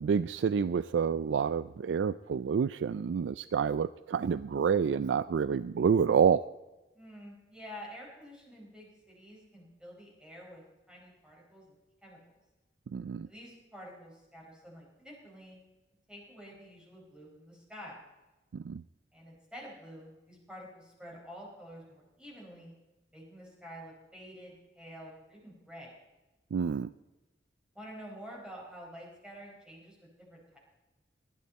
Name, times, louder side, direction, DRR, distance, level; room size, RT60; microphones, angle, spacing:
voice 1, 0.0-6.4 12.9-13.3 18.5-18.8 26.5-26.9, right 6 dB, 75° right, 16 dB, 0.3 m, -28 dB
voice 2, 6.9-11.8 12.0-12.2 13.3-15.6 16.1-18.0 19.1-22.7 23.1-25.9 27.7-30.6, equal, 5° right, -3 dB, 4.3 m, -49 dB
18.5 x 12.5 x 4.2 m, 1.1 s
head